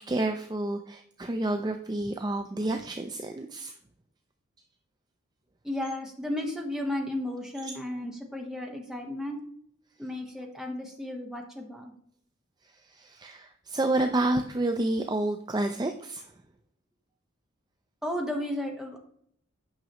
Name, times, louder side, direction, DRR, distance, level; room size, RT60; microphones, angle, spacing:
voice 1, 0.1-3.7 12.9-16.2, right 2 dB, 20° right, 6 dB, 0.4 m, -29 dB
voice 2, 5.6-9.4 10.0-11.9 18.0-19.0, left 1 dB, 5° right, 1 dB, 1.2 m, -34 dB
9.3 x 6.0 x 3.0 m, 0.66 s
head